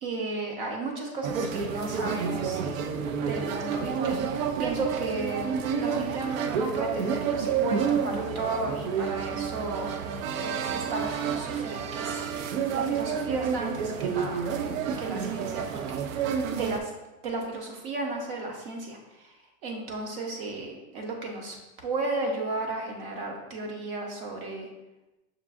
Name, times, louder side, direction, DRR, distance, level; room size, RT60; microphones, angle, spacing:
voice 1, 0.0-2.8 3.2-5.5 5.8-12.2 12.7-14.5 15.0-16.0 16.5-16.9 17.2-24.7, right 2 dB, 45° right, 1 dB, 0.8 m, -34 dB
sound 1, 1.2-16.8, right 6 dB, 75° right, 0.5 m, -29 dB
5.8 x 2.4 x 2.4 m, 1.0 s
supercardioid pair, 160°, 41 cm